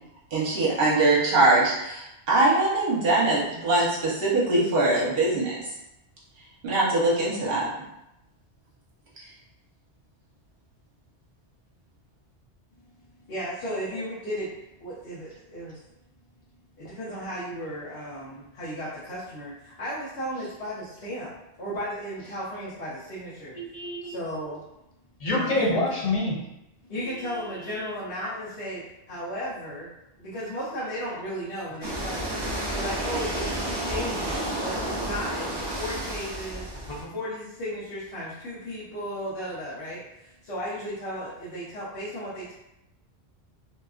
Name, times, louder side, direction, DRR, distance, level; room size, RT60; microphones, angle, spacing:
voice 1, 0.3-5.6 6.6-7.7, right 2 dB, 60° right, -6 dB, 1.1 m, -22 dB
voice 2, 13.3-14.5 14.8-15.8 16.8-21.3 21.6-23.6 24.0-24.6 25.2-25.9 26.9-29.9 30.2-32.4 32.7-36.7 37.1-42.5, equal, 70° left, -10 dB, 1.0 m, -35 dB
voice 3, 23.5-24.2 25.2-26.3 27.0-27.3 36.9-37.0, left 2 dB, 45° left, -4 dB, 0.5 m, -27 dB
sound 1, 31.8-37.0, right 1 dB, 45° right, 0.3 m, -31 dB
2.7 x 2.3 x 2.3 m, 0.88 s
omnidirectional pair, 1.1 m